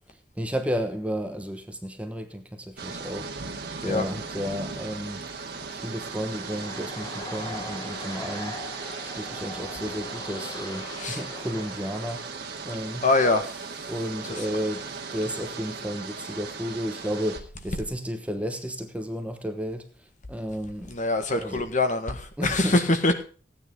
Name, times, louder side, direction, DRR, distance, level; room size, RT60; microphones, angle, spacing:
voice 1, 0.1-3.3 3.8-5.2 5.7-8.6 9.1-12.3 12.6-13.0 13.9-21.0 21.3-21.6 22.4-22.8, equal, 5° right, 1.1 m, -32 dB
sound 1, 2.8-17.4, right 4 dB, 60° right, 2.1 m, -37 dB
sound 2, 5.4-12.8, left 2 dB, 25° left, 1.4 m, -42 dB
voice 2, 13.0-13.6 14.2-14.6 20.9-23.2, left 2 dB, 45° left, 1.6 m, -24 dB
16.0 x 9.4 x 3.7 m
head